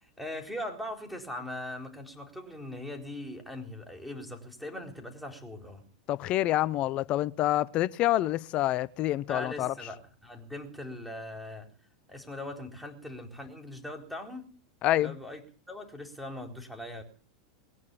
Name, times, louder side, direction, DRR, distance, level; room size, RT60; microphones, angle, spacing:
voice 1, 0.0-5.8 9.3-11.7 12.1-14.5 15.0-15.4 15.7-17.0, left 1 dB, ahead, 4.2 m, -40 dB
voice 2, 6.1-9.7 14.8-15.1, left 14 dB, 40° left, 0.8 m, -27 dB
21.0 x 9.7 x 7.0 m
hypercardioid pair, 95°, 3 cm